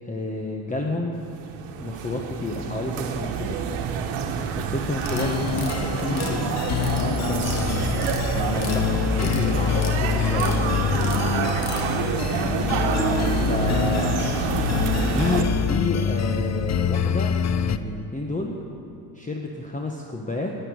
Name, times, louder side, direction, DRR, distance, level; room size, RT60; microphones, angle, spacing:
voice 1, 0.0-1.2 1.8-3.6 4.6-6.6 6.9-7.8 8.3-11.3 12.2-12.5 13.5-14.1 15.0-18.6 19.1-20.5, left 2 dB, 15° left, 0 dB, 1.2 m, -30 dB
sound 1, 1.2-15.4, right 7 dB, 80° right, 1.3 m, -27 dB
sound 2, 4.9-5.8 6.1-7.0 7.3-7.6 7.9-8.8 9.1-10.0 10.2-10.6 10.9-11.8, left 7 dB, 70° left, 2.0 m, -38 dB
sound 3, 5.1-17.8, left 8 dB, 35° left, 0.6 m, -25 dB
9.9 x 9.3 x 9.8 m, 2.6 s
cardioid pair, 95°, 48 cm